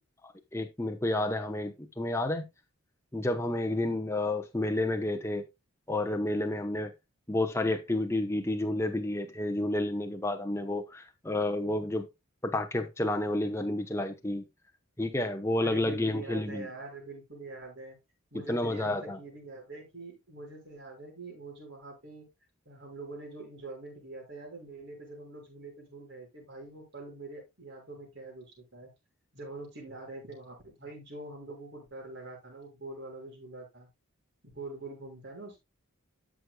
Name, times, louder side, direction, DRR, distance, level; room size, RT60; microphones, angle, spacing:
voice 1, 0.2-2.4 3.1-5.4 5.9-6.9 7.3-12.1 12.4-14.4 15.0-16.7 18.5-19.2, left 1 dB, 10° left, 0.8 m, -30 dB
voice 2, 15.6-18.0 18.3-22.3 22.7-28.9 29.3-33.9 34.4-35.6, right 2 dB, 55° right, 5.6 m, -44 dB
13.0 x 6.3 x 2.3 m
head